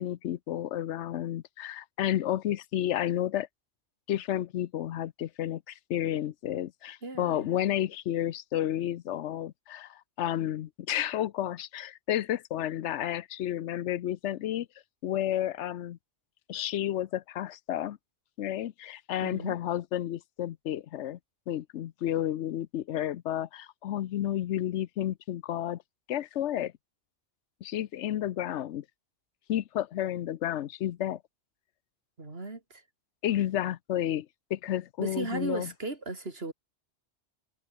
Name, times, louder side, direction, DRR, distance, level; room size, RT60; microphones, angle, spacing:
voice 1, 0.0-3.5 4.1-14.7 15.0-16.0 16.5-18.0 18.4-21.2 21.5-25.8 26.1-26.7 27.6-28.8 29.5-31.2 33.2-34.3 34.5-35.7, left 12 dB, 90° left, 1.0 m, -31 dB
voice 2, 7.0-7.5 19.2-19.6 32.2-32.8 35.0-36.5, right 2 dB, 60° right, 3.4 m, -36 dB
omnidirectional pair, 1.2 m